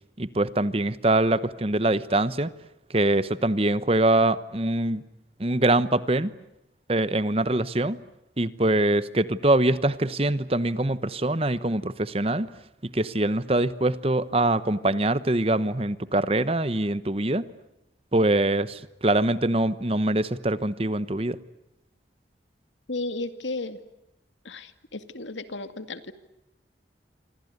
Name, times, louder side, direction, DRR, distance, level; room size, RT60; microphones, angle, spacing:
voice 1, 0.2-2.5 2.9-5.0 5.4-6.3 6.9-8.0 8.4-12.5 12.9-17.5 18.1-21.4, right 2 dB, 30° right, 15 dB, 1.0 m, -23 dB
voice 2, 22.9-23.8 24.4-26.1, left 2 dB, 85° left, 10 dB, 2.3 m, -34 dB
27.5 x 26.0 x 8.2 m, 0.90 s
head